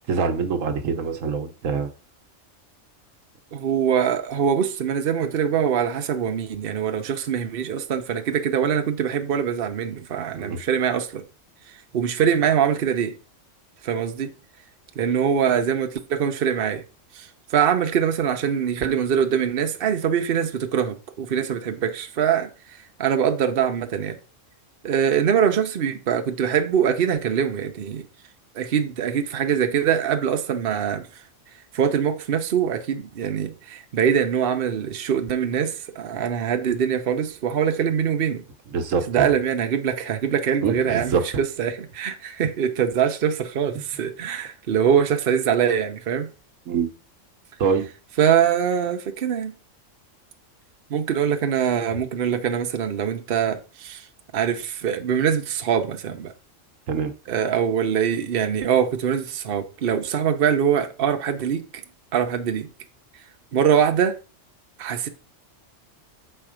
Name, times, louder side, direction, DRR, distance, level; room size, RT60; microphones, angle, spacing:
voice 1, 0.1-1.9 10.4-10.6 38.7-39.3 40.6-41.2 46.7-46.9 47.6-47.9 56.9-57.1, right 5 dB, 85° right, 1.3 m, -24 dB
voice 2, 3.5-11.2 11.9-13.1 13.8-14.3 15.0-16.8 17.1-22.5 23.0-24.2 24.8-28.0 28.5-31.1 31.7-38.4 39.1-46.3 48.2-49.5 50.9-54.0 54.3-56.3 57.3-61.8 62.1-62.7 63.5-64.2 64.8-65.1, right 8 dB, 50° right, 0.9 m, -23 dB
6.8 x 4.4 x 5.0 m
omnidirectional pair, 1.3 m